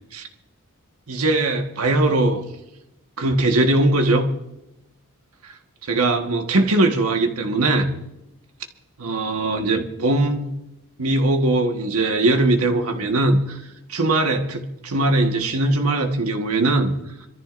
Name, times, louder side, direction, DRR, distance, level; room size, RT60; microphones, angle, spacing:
voice 1, 1.1-2.4 3.2-4.3 5.9-7.9 9.0-10.5 11.0-13.6 13.9-16.9, right 2 dB, 85° right, 1.5 m, -20 dB
26.5 x 14.0 x 2.6 m
head